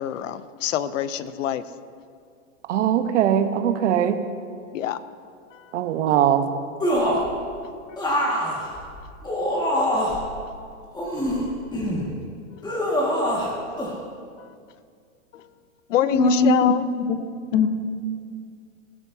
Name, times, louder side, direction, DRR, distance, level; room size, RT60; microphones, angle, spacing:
voice 1, 0.0-1.6 4.7-5.0 5.5-5.6 8.2-8.9 9.7-9.8 11.9-12.1 15.3-15.4 15.9-16.9, left 11 dB, 75° left, 14 dB, 0.7 m, -26 dB
voice 2, 2.7-4.2 5.7-6.5, right 10 dB, 65° right, 8 dB, 1.2 m, -21 dB
sound 1, 6.8-7.3 8.0-10.3 10.9-12.0 12.6-13.5 13.8-13.9, equal, 10° left, 2.0 m, -24 dB
voice 3, 16.0-16.7 17.1-17.2 17.5-17.7, left 3 dB, 45° left, 6 dB, 1.3 m, -19 dB
20.0 x 12.5 x 2.8 m, 2.3 s
hypercardioid pair, 140°, 38 cm